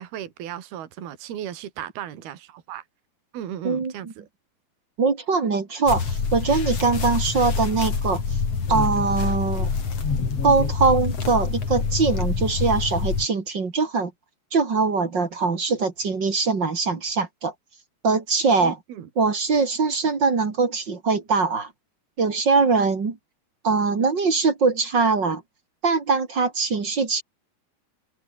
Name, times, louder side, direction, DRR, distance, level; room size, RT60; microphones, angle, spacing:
voice 1, 0.0-2.8 3.3-4.3 18.6-19.1, right 10 dB, 65° right, 4.2 m, -36 dB
voice 2, 3.6-4.1 5.0-8.2 8.7-9.7 10.4-14.1 14.5-17.5 18.0-18.8 19.2-21.7 22.2-23.2 23.6-25.4 25.8-27.2, right 4 dB, 35° right, 2.4 m, -22 dB
sound 1, 5.9-13.3, left 5 dB, 35° left, 4.3 m, -26 dB
omnidirectional pair, 4.9 m